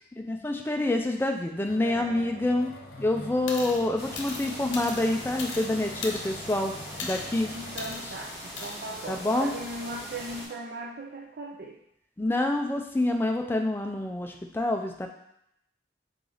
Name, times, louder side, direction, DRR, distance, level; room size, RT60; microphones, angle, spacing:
voice 1, 0.2-2.7 3.0-6.7 7.0-7.5 9.1-9.5 12.2-15.1, left 2 dB, 10° left, 3 dB, 0.3 m, -27 dB
sound 1, 1.7-7.9, left 1 dB, 50° left, 0.6 m, -45 dB
voice 2, 1.8-2.6 7.5-11.8, right 2 dB, 60° right, -2 dB, 0.5 m, -38 dB
sound 2, 3.5-3.8 4.2-5.7 6.0-6.5 7.0-7.3 7.8-8.0 8.6-8.8, left 4 dB, 90° left, 0.7 m, -37 dB
sound 3, 4.0-10.5, equal, 20° right, 1.2 m, -41 dB
3.9 x 3.2 x 3.8 m, 0.76 s
head